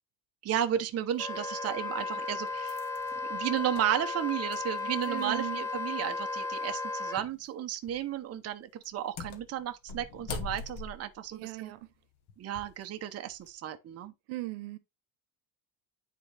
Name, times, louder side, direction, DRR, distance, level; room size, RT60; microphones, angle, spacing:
voice 1, 0.4-2.8 3.2-11.7 12.4-14.1, right 11 dB, 30° right, 0.7 m, -33 dB
sound 1, 1.2-1.3 2.0-5.5 5.8-5.9 7.2-7.4 7.8-8.2 8.8-12.8 13.3-13.5, left 4 dB, 55° left, 1.5 m, -44 dB
Wind instrument woodwind instrument, 1.2-7.2, left 3 dB, 5° left, 0.8 m, -35 dB
voice 2, 5.1-5.6 11.3-11.9 14.3-14.8, right 19 dB, 80° right, 1.0 m, -37 dB
9.5 x 3.8 x 3.2 m
cardioid pair, 140°, 48 cm